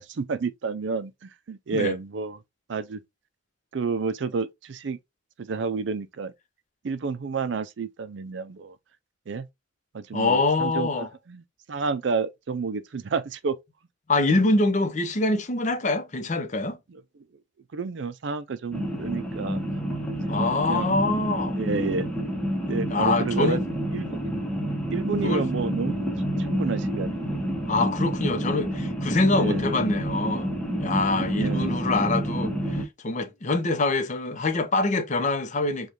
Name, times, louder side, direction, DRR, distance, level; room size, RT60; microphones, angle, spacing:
voice 1, 0.0-2.4 2.7-3.0 3.7-5.0 5.4-6.3 6.8-8.8 9.3-9.5 9.9-11.4 11.7-13.6 16.9-17.0 17.7-19.6 20.1-20.9 21.5-22.1 22.7-23.6 23.9-24.2 24.9-26.1 26.4-27.2 29.3-29.6 31.3-31.9, right 5 dB, 65° right, 0.4 m, -30 dB
voice 2, 10.1-11.1 14.1-16.8 20.3-21.6 22.9-23.6 25.2-25.4 27.7-30.5 30.8-35.9, left 2 dB, 40° left, 0.7 m, -25 dB
sound 1, 18.7-32.8, equal, 5° left, 0.9 m, -28 dB
5.1 x 2.3 x 2.9 m
head